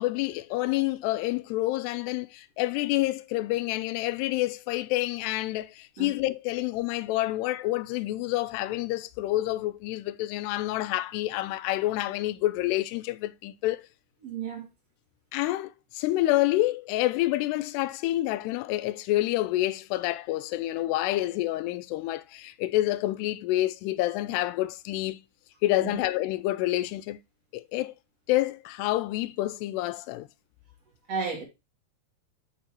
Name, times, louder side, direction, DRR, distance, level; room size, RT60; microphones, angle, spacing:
voice 1, 0.0-13.9 15.3-25.2 25.6-27.2 27.5-27.9 28.3-30.3, left 16 dB, 85° left, 2.6 m, -28 dB
voice 2, 14.2-14.7 25.8-25.9 31.1-31.4, right 5 dB, 40° right, 3.3 m, -33 dB
9.3 x 6.9 x 2.9 m
omnidirectional pair, 4.8 m